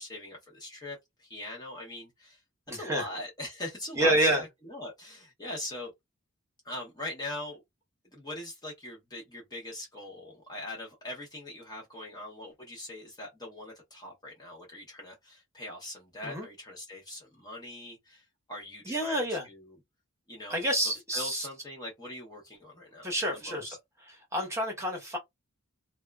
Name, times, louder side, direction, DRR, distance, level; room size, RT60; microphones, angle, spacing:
voice 1, 0.0-2.4 2.7-5.9 6.6-7.6 8.1-19.7 20.3-20.6 21.1-23.8, left 1 dB, 20° left, 0.7 m, -41 dB
voice 2, 2.7-3.1 4.0-4.4 16.2-16.5 18.8-19.5 20.5-21.5 23.0-23.8 24.1-25.2, right 1 dB, 15° right, 0.9 m, -28 dB
2.8 x 2.2 x 2.3 m
head